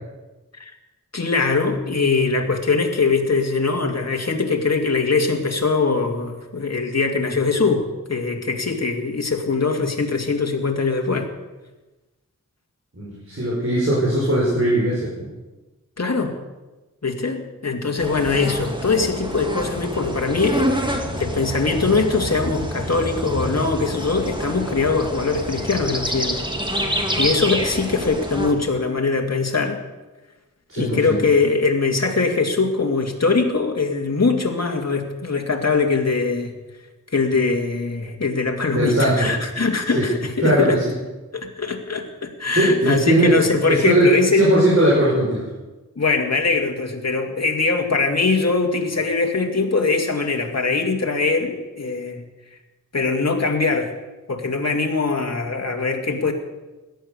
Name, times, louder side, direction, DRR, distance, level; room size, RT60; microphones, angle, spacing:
voice 1, 1.1-11.3 16.0-16.4 17.0-26.4 26.7-29.8 30.8-36.5 37.1-40.8 41.3-44.5 46.0-52.2 52.9-53.9 54.3-56.3, left 4 dB, 55° left, 2 dB, 2.3 m, -22 dB
voice 2, 12.9-15.3 30.7-31.2 38.7-39.3 39.9-40.1 40.4-40.8 42.5-43.3 43.7-44.1 44.3-45.4, right 1 dB, 45° right, -6 dB, 5.7 m, -19 dB
sound 1, 18.0-28.5, equal, 15° right, 2.3 m, -27 dB
17.0 x 12.5 x 6.7 m, 1.1 s
wide cardioid pair, 75°, 32 cm